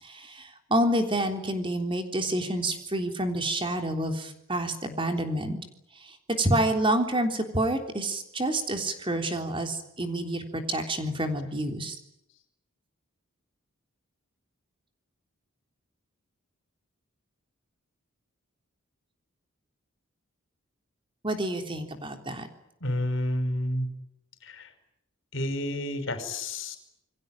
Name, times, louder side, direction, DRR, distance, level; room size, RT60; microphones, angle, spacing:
voice 1, 0.0-5.6 6.0-12.0 21.2-22.5, right 1 dB, 25° right, 5 dB, 3.5 m, -28 dB
voice 2, 22.8-23.9 24.4-24.7 25.3-26.8, left 1 dB, 60° left, 10 dB, 5.3 m, -30 dB
28.5 x 22.5 x 9.1 m, 0.81 s
head